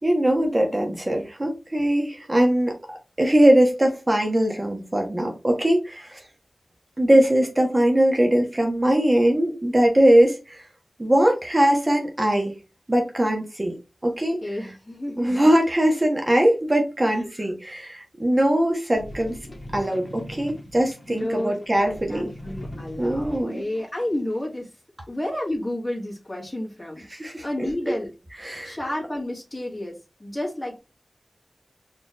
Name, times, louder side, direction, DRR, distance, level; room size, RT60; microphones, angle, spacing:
voice 1, 0.0-2.7 3.2-6.2 7.0-10.6 11.0-12.5 12.9-13.7 14.0-14.4 15.2-19.4 19.7-22.3 23.0-23.6 27.1-27.7 28.4-28.8, right 1 dB, 35° right, 1.3 m, -21 dB
voice 2, 14.4-15.5 17.1-17.5 21.1-24.7 25.1-27.0 27.4-28.1 28.6-30.8, left 1 dB, 15° left, 1.9 m, -31 dB
sound 1, 18.9-23.8 24.4-24.5, left 1 dB, 45° left, 1.5 m, -40 dB
4.3 x 3.3 x 3.1 m
cardioid pair, 45°, 0 cm